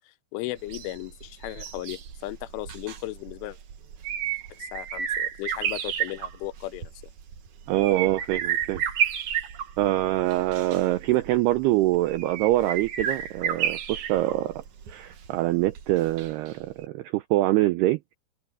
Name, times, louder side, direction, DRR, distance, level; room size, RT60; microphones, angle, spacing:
voice 1, 0.1-3.6 4.5-6.9, left 17 dB, 90° left, 3.4 m, -36 dB
sound 1, 0.6-16.5 16.8-16.9, right 9 dB, 55° right, 2.4 m, -32 dB
voice 2, 7.7-8.8 9.8-14.6 14.9-18.1, right 16 dB, 85° right, 2.3 m, -24 dB
open air
omnidirectional pair, 5.4 m